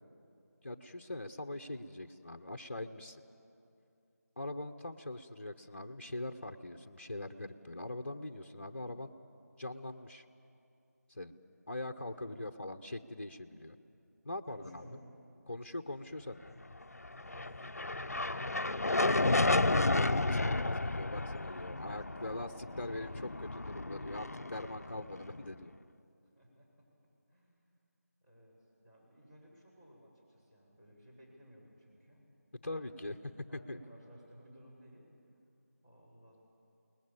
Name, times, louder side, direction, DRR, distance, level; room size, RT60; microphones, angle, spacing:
voice 1, 0.6-3.2 4.4-9.1 9.6-10.2 11.1-11.3 11.7-13.8 14.2-14.9 15.5-16.5 19.4-25.7 32.6-33.2 33.7-33.8, left 1 dB, 40° left, 8 dB, 0.9 m, -42 dB
voice 2, 12.1-12.5 14.4-15.1 17.2-18.6 21.2-21.4 21.7-22.1 26.2-26.9 27.3-27.6 28.2-28.6 28.8-32.3 32.6-33.0 33.5-35.1 35.8-36.4, equal, 25° right, -8 dB, 6.7 m, -57 dB
sound 1, 17.0-25.5, left 2 dB, 65° left, 0.5 m, -32 dB
29.0 x 20.0 x 7.4 m, 2.6 s
figure-of-eight pair, 165°, 9 cm